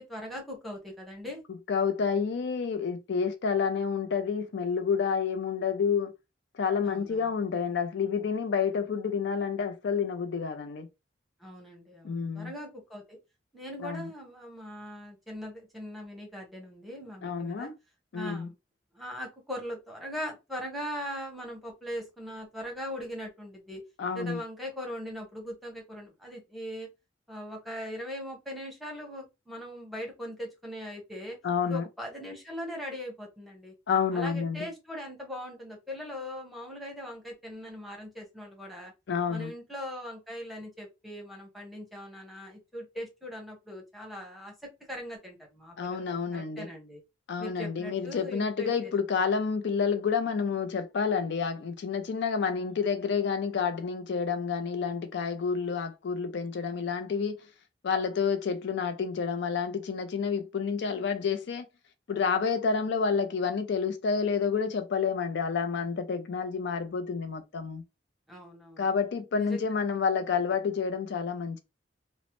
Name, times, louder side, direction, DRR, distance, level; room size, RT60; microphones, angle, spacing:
voice 1, 0.0-1.4 6.8-7.3 11.4-13.2 13.5-17.7 18.1-18.5 18.9-23.8 24.1-26.9 27.3-31.4 31.7-33.7 34.1-38.9 39.3-47.0 47.4-48.9 68.3-68.9 69.3-69.6, equal, ahead, 0.9 m, -40 dB
voice 2, 1.5-6.1 6.5-10.9 12.0-12.5 13.8-14.1 17.2-17.7 18.1-18.5 24.0-24.4 31.4-31.9 33.9-34.7 39.1-39.5 45.8-46.7 47.3-57.4 57.8-61.7 62.1-67.8 68.8-71.6, left 6 dB, 65° left, 0.4 m, -29 dB
3.0 x 2.0 x 2.9 m
head